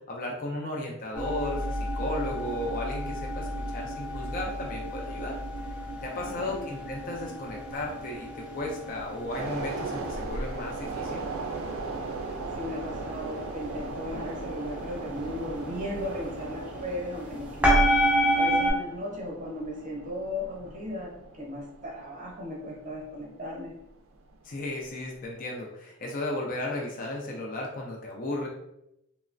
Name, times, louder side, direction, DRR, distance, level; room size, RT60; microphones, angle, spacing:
voice 1, 0.1-5.4 6.0-11.3 24.4-28.5, left 1 dB, 40° left, -1 dB, 0.4 m, -35 dB
sound 1, 1.1-18.7, equal, 5° right, 0.5 m, -30 dB
voice 2, 6.2-6.6 12.5-23.7, left 1 dB, 35° right, -1 dB, 0.8 m, -36 dB
sound 2, 9.3-23.9 24.2-24.4, right 3 dB, 75° right, 0.4 m, -38 dB
3.1 x 2.0 x 2.5 m, 0.83 s
head